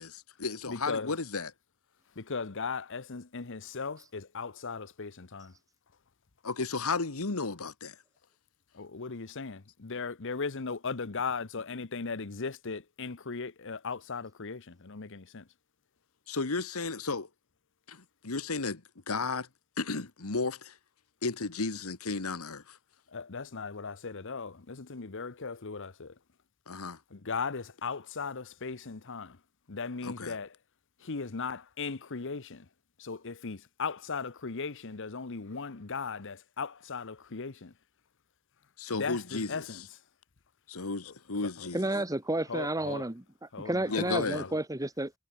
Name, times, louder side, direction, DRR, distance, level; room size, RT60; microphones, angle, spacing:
voice 1, 0.0-1.5 6.4-8.0 16.3-17.3 17.9-19.5 19.8-20.7 21.2-22.8 26.7-27.0 30.0-30.4 38.8-39.8 40.7-41.8 43.9-44.5, left 3 dB, 80° left, 1.6 m, -34 dB
voice 2, 0.7-1.1 2.2-5.5 8.7-15.4 23.1-26.1 27.1-29.4 29.7-30.5 31.0-32.6 33.0-37.7 38.9-39.8 41.1-41.2 41.4-41.7 42.5-43.0 43.5-44.6, left 4 dB, 60° left, 1.0 m, -37 dB
voice 3, 41.7-45.1, right 1 dB, 15° right, 1.9 m, -31 dB
head